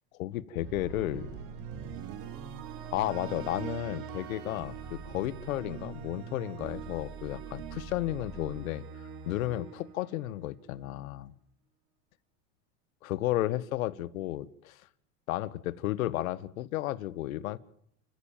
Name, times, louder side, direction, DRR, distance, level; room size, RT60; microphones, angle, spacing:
voice 1, 0.1-1.3 2.9-11.3 13.0-14.8 15.3-17.6, left 15 dB, 85° left, 16 dB, 1.5 m, -33 dB
sound 1, 0.6-10.8, right 7 dB, 55° right, 3.1 m, -42 dB
29.0 x 15.5 x 7.4 m, 0.69 s
supercardioid pair, 135°, 40 cm